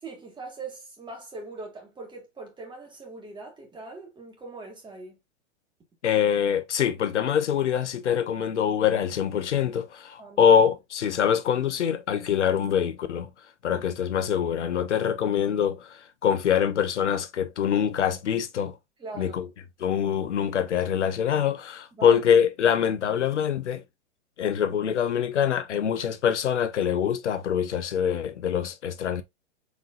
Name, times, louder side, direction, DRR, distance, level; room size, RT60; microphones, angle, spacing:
voice 1, 0.0-5.2 10.2-10.6 13.7-13.8 19.0-19.4 22.0-22.2, right 3 dB, 15° right, 2.0 m, -41 dB
voice 2, 6.0-13.3 13.6-18.8 19.2-19.5 19.8-23.8 24.4-29.2, left 8 dB, 80° left, 0.8 m, -24 dB
4.7 x 3.6 x 2.5 m
hypercardioid pair, 110°, 35 cm